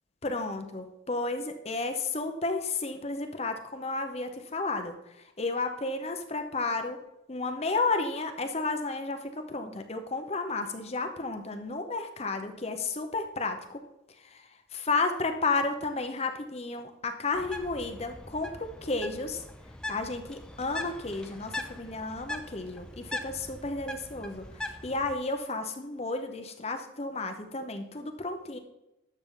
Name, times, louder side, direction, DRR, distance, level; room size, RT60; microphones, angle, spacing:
voice 1, 0.2-7.0 7.3-13.8 14.2-19.4 19.9-28.6, left 3 dB, 30° left, 6 dB, 0.8 m, -32 dB
Bird, 17.3-25.1, left 2 dB, 5° left, 0.6 m, -41 dB
11.5 x 6.8 x 3.8 m, 0.89 s
head